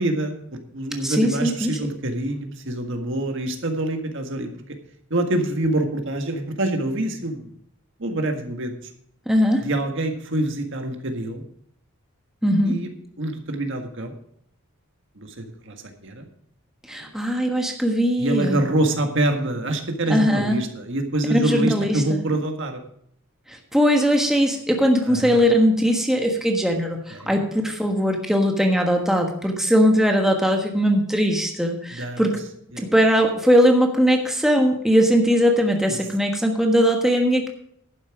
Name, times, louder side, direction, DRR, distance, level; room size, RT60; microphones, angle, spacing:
voice 1, 0.0-4.5 5.1-7.5 8.0-8.7 9.6-11.4 12.6-14.1 15.2-16.3 17.0-17.1 18.2-22.8 25.0-25.4 27.1-27.3 31.9-32.4 32.7-32.8, right 1 dB, 60° right, 5 dB, 1.7 m, -26 dB
voice 2, 1.0-1.9 9.3-9.7 12.4-12.8 16.8-18.6 20.1-20.6 21.3-22.0 23.5-32.4 32.8-37.5, equal, ahead, 2 dB, 1.3 m, -20 dB
11.5 x 9.5 x 4.9 m, 0.70 s
head